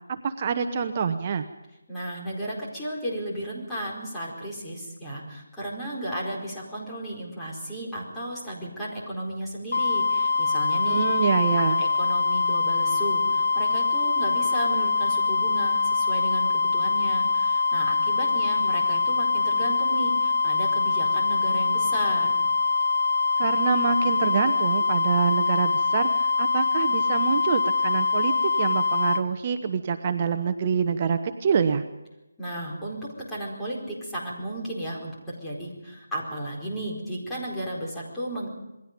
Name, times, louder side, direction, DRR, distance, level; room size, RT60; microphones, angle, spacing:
voice 1, 0.1-1.5 10.9-11.8 23.4-31.8, right 6 dB, 30° right, 8 dB, 0.9 m, -26 dB
voice 2, 1.9-11.0 11.8-22.3 32.4-38.5, right 1 dB, 5° left, -6 dB, 4.6 m, -34 dB
sound 1, 9.7-29.2, left 4 dB, 60° left, 1.2 m, -24 dB
27.5 x 21.5 x 5.3 m, 0.95 s
figure-of-eight pair, 170°, 0 cm